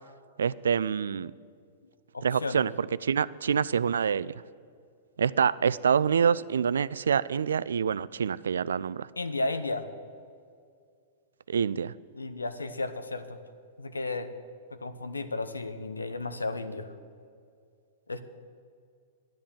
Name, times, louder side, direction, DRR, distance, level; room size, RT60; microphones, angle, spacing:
voice 1, 0.4-1.3 2.2-4.3 5.2-9.1 11.5-11.9, right 7 dB, 75° right, 18 dB, 0.3 m, -26 dB
voice 2, 2.1-2.7 9.2-9.8 12.1-13.4 13.8-14.3 14.7-16.9 18.1-18.2, left 2 dB, 85° left, 10 dB, 0.9 m, -33 dB
12.0 x 10.5 x 7.1 m, 2.3 s
figure-of-eight pair, 105°, 0 cm